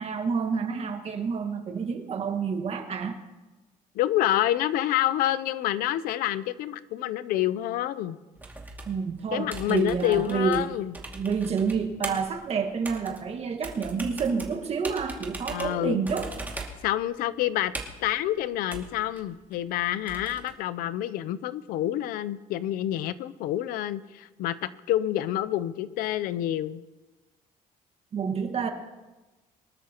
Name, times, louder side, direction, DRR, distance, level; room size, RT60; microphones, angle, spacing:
voice 1, 0.0-3.2 8.8-10.7 11.1-16.3 28.1-28.7, right 5 dB, 45° right, 5 dB, 1.7 m, -29 dB
voice 2, 3.9-8.2 9.3-10.9 15.5-16.0 16.8-17.7 18.0-26.8, left 13 dB, 85° left, 16 dB, 0.6 m, -28 dB
sound 1, 8.4-20.5, right 2 dB, 10° right, 2.3 m, -40 dB
23.5 x 12.5 x 3.0 m, 1.2 s
cardioid pair, 110°, 15 cm